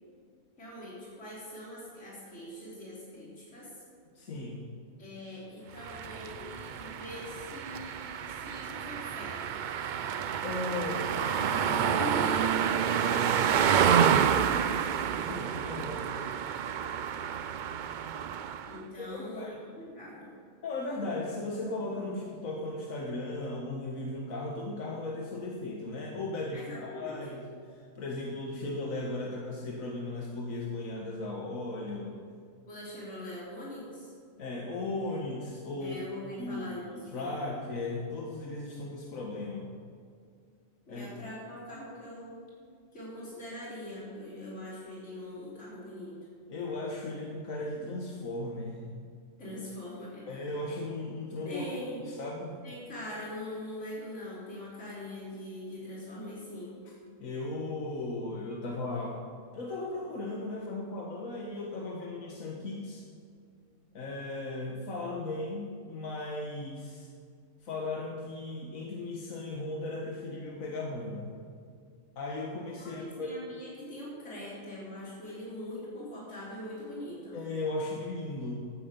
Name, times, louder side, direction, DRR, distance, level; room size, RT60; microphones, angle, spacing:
voice 1, 0.6-3.7 5.0-9.5 11.0-14.9 18.6-19.5 19.8-20.3 26.5-27.2 32.7-34.1 35.8-37.5 40.9-42.4 42.9-46.2 49.4-50.3 51.4-52.1 52.6-56.8 72.8-77.4, left 1 dB, 60° left, -7 dB, 4.3 m, -42 dB
voice 2, 4.2-4.7 10.4-11.1 15.2-16.1 19.0-19.1 19.3-19.6 20.6-27.4 27.7-32.2 34.4-36.0 36.3-39.7 40.9-41.1 46.5-48.9 50.3-51.7 52.1-52.5 57.2-59.2 59.5-63.0 63.9-67.1 67.6-71.4 72.2-73.3 77.3-78.6, left 2 dB, 85° left, -1 dB, 1.8 m, -36 dB
sound 1, 5.8-18.8, right 8 dB, 65° right, 0.4 m, -29 dB
13.5 x 10.0 x 6.9 m, 2.1 s
omnidirectional pair, 1.4 m